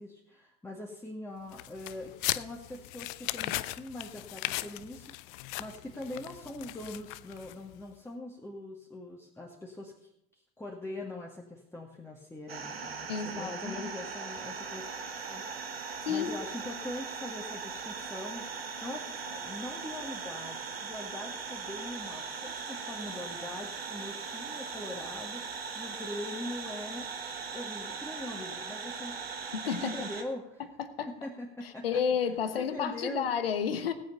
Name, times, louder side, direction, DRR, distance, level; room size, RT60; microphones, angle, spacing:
voice 1, 0.0-10.1 10.6-14.9 15.3-27.1 27.5-29.2 29.8-30.6 31.2-32.0 32.6-33.3, left 1 dB, 10° left, -2 dB, 2.0 m, -42 dB
sound 1, 1.5-7.8, left 18 dB, 60° left, 0.6 m, -38 dB
sound 2, 12.5-30.2, right 5 dB, 85° right, 1.3 m, -39 dB
voice 2, 13.1-13.9 16.0-16.3 29.5-30.1 30.8-31.3 31.6-33.9, left 7 dB, 75° left, 10 dB, 1.2 m, -31 dB
17.5 x 7.9 x 5.5 m, 0.77 s
figure-of-eight pair, 70°, 29 cm